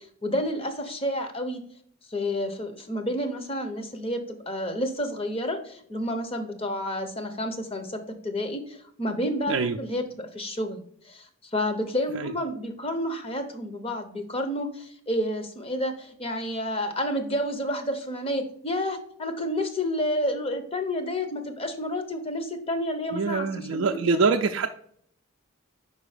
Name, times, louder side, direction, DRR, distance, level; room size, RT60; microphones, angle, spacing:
voice 1, 0.0-1.6 2.1-24.2, left 1 dB, 25° left, 7 dB, 0.7 m, -30 dB
voice 2, 9.5-9.8 12.1-12.3 23.1-24.7, right 4 dB, 60° right, 3 dB, 0.4 m, -24 dB
5.3 x 4.8 x 4.9 m, 0.63 s
head